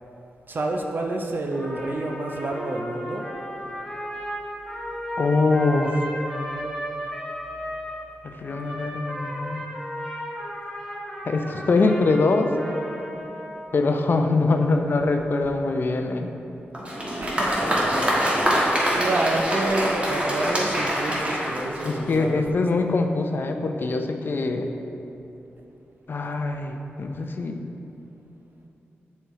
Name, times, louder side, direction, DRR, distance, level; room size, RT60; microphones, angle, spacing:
voice 1, 0.5-3.3 17.2-17.7 18.3-18.6 19.0-22.6, right 2 dB, 50° right, 2 dB, 0.5 m, -29 dB
Trumpet, 1.5-8.0 8.4-13.8, equal, 10° left, 1.3 m, -35 dB
voice 2, 5.2-6.1 8.2-9.8 11.2-12.5 13.7-16.3 21.8-24.7 26.1-27.6, left 3 dB, 55° left, 5 dB, 0.5 m, -23 dB
Applause, 16.7-22.3, equal, 30° right, 1.4 m, -24 dB
7.0 x 4.3 x 3.6 m, 2.9 s
cardioid pair, 65°, 4 cm